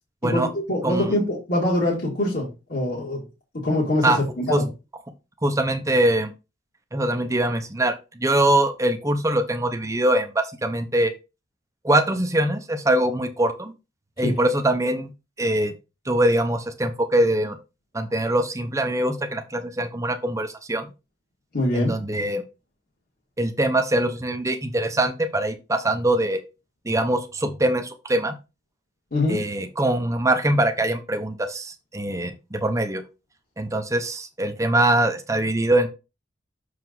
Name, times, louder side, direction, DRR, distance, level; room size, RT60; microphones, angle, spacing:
voice 1, 0.2-3.2 3.5-4.7 14.2-14.4 21.5-21.9 29.1-29.4, left 1 dB, 45° left, -4 dB, 2.1 m, -24 dB
voice 2, 5.4-6.3 6.9-11.1 11.8-13.7 14.2-15.1 15.4-15.7 16.1-17.6 17.9-20.9 21.7-22.4 23.4-26.4 26.8-28.3 29.3-33.0 33.6-35.9, right 1 dB, 15° right, 7 dB, 0.8 m, -23 dB
6.5 x 4.8 x 3.9 m, 0.28 s
head